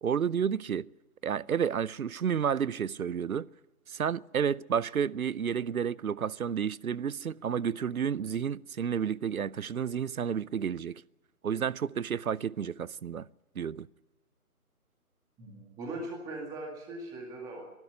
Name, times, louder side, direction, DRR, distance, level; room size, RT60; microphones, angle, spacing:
voice 1, 0.0-0.9 1.2-3.5 3.9-11.0 11.4-13.3 13.6-13.9, right 7 dB, 70° right, 0.7 m, -31 dB
voice 2, 15.4-17.6, right 2 dB, 10° right, 2.1 m, -40 dB
22.5 x 12.0 x 9.8 m
figure-of-eight pair, 155°, 45 cm